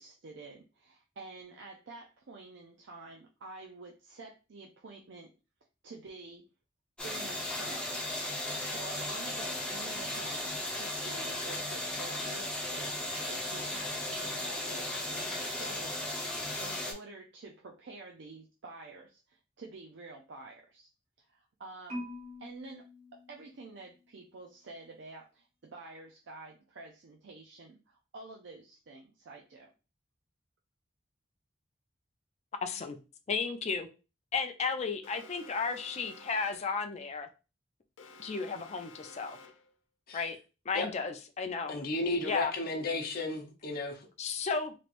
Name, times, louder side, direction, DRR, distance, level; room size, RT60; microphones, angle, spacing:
voice 1, 0.0-5.3 5.8-6.5 7.0-8.0 8.6-16.3 16.6-20.9 21.2-22.1 22.4-22.8 23.1-29.7, right 3 dB, 70° right, 0 dB, 0.5 m, -49 dB
sound 1, 7.0-16.9, left 1 dB, 5° left, 0.9 m, -36 dB
Marimba xylophone, 21.9-24.1, left 1 dB, 35° right, 1.0 m, -45 dB
voice 2, 32.6-33.0 33.3-33.9 34.3-37.3 38.2-39.4 40.1-40.4 40.7-41.7 42.2-42.5 44.2-44.7, left 5 dB, 35° left, 6 dB, 0.4 m, -33 dB
Alarm, 35.0-36.8 38.0-39.8, left 3 dB, 90° left, 0.5 m, -52 dB
voice 3, 41.7-44.1, left 2 dB, 55° left, 2 dB, 0.8 m, -34 dB
3.2 x 3.0 x 2.5 m, 0.31 s
head